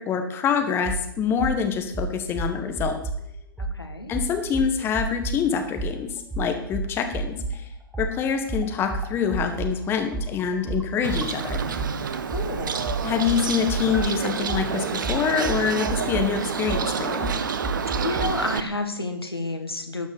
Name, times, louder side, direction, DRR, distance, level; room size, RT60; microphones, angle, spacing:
voice 1, 0.0-3.0 4.1-7.7 8.0-11.6 13.0-17.3, left 7 dB, 20° left, 6 dB, 1.2 m, -26 dB
sound 1, 0.8-1.0 1.4-1.6 1.9-3.2 3.6-3.8 4.1-5.4 5.8-5.9 6.3-7.6 7.9-11.9 12.3-18.3, right 3 dB, 5° right, 1.3 m, -30 dB
voice 2, 3.6-4.1 12.3-12.9 18.0-20.1, left 2 dB, 85° left, 6 dB, 1.6 m, -30 dB
Bird, 11.0-18.6, right 6 dB, 55° right, 0.9 m, -28 dB
12.0 x 5.2 x 6.9 m, 0.77 s
figure-of-eight pair, 115°, 12 cm